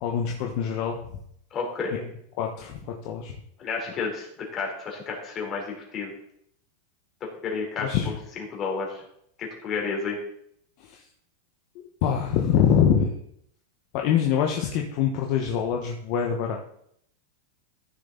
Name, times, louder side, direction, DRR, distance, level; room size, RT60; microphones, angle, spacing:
voice 1, 0.0-1.0 2.4-3.3 7.8-8.1 10.8-11.0 12.0-13.1 13.9-16.6, left 8 dB, 50° left, 1 dB, 1.2 m, -24 dB
voice 2, 1.5-2.0 3.6-4.3 4.5-6.1 7.4-9.0 9.4-10.2, left 4 dB, 30° left, -1 dB, 3.6 m, -31 dB
14.5 x 6.8 x 3.9 m, 0.71 s
supercardioid pair, 145°, 0 cm